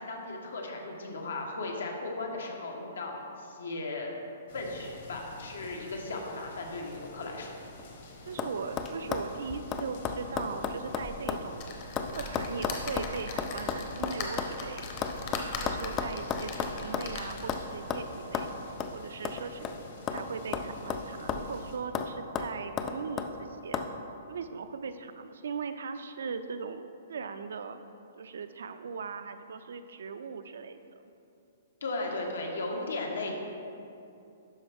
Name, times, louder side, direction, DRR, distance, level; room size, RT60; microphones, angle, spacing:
voice 1, 0.0-4.1 4.5-7.6 31.8-33.3, left 2 dB, 90° left, 1 dB, 1.4 m, -36 dB
sound 1, 4.5-21.8, left 2 dB, 55° left, 1.2 m, -49 dB
sound 2, 7.6-8.0 8.4-8.5 8.8-11.5 11.7-14.5 15.0-17.1 17.5-17.6 17.9-18.0 18.3-18.5 18.8-18.9 19.2-20.3 20.5-21.6 21.9-22.1 22.4-23.3 23.7-23.9, left 6 dB, 20° left, 0.3 m, -33 dB
voice 2, 8.3-11.6 12.1-14.9 15.3-18.5 18.9-23.8 24.3-27.8 28.2-30.8, right 5 dB, 75° right, 9 dB, 0.4 m, -39 dB
sound 3, 11.6-17.8 18.3-18.4 18.7-18.8, left 4 dB, 35° left, 0.8 m, -40 dB
11.5 x 4.5 x 3.5 m, 2.7 s
hypercardioid pair, 165°, 0 cm